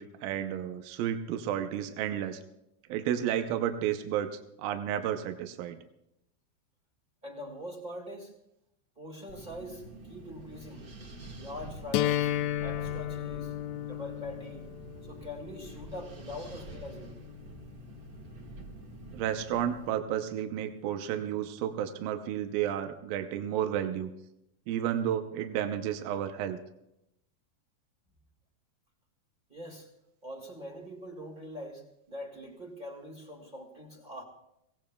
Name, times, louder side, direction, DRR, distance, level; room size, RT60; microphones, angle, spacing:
voice 1, 0.0-2.4 2.9-5.8 19.1-24.1 24.7-26.6, right 10 dB, 80° right, 7 dB, 2.5 m, -32 dB
voice 2, 7.2-8.3 8.9-10.9 11.3-12.3 12.6-14.7 15.0-17.2 29.5-29.9 30.2-34.2, left 1 dB, 20° right, -1 dB, 1.2 m, -43 dB
Wind, 9.3-20.0, right 1 dB, 55° right, 1.0 m, -47 dB
sound 1, 11.9-17.9, left 12 dB, 80° left, 1.8 m, -34 dB
24.0 x 17.5 x 2.3 m, 0.84 s
omnidirectional pair, 4.1 m